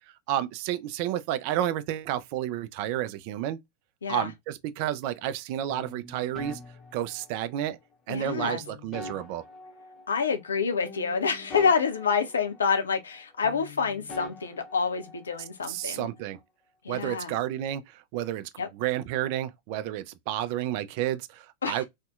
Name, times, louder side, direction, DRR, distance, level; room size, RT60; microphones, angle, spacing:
voice 1, 0.3-3.6 4.1-6.6 6.9-7.8 8.1-9.4 15.7-16.4 16.9-21.8, right 12 dB, 45° right, 0.3 m, -31 dB
sound 1, 5.7-7.7 8.3-10.6 10.9-13.2 13.4-15.5, left 2 dB, 30° left, 0.7 m, -44 dB
voice 2, 8.1-8.6 10.1-16.1 16.8-17.3 18.6-18.7 21.6-21.8, left 5 dB, 70° left, 0.5 m, -27 dB
2.6 x 2.0 x 2.3 m
figure-of-eight pair, 90°, 0 cm